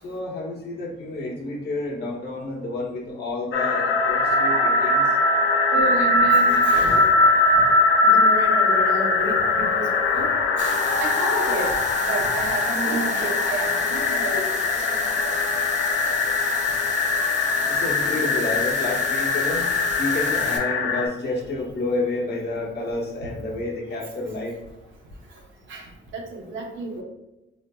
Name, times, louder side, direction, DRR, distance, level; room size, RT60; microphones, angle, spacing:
voice 1, 0.0-5.0 17.7-19.7 20.0-24.5, left 2 dB, 55° left, -2 dB, 0.9 m, -29 dB
sound 1, 3.5-21.1, left 3 dB, 75° left, 0.5 m, -21 dB
voice 2, 5.7-7.1 8.0-9.9 10.2-10.3 10.6-11.7 12.1-14.4 14.9-15.0 25.7-25.8 26.1-27.0, right 2 dB, 75° right, 1 dB, 0.8 m, -30 dB
sound 2, 10.6-20.6, right 4 dB, 35° right, 0.6 m, -35 dB
3.9 x 2.5 x 2.2 m, 1.0 s
cardioid pair, 90°, 20 cm